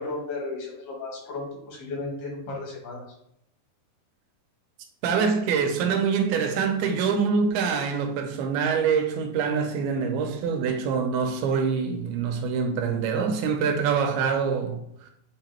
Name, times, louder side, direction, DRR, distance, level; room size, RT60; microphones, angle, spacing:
voice 1, 0.0-3.0, left 3 dB, 80° left, 4.1 m, -34 dB
voice 2, 5.0-14.8, right 6 dB, 85° right, 2.7 m, -25 dB
8.3 x 2.9 x 4.4 m
omnidirectional pair, 4.4 m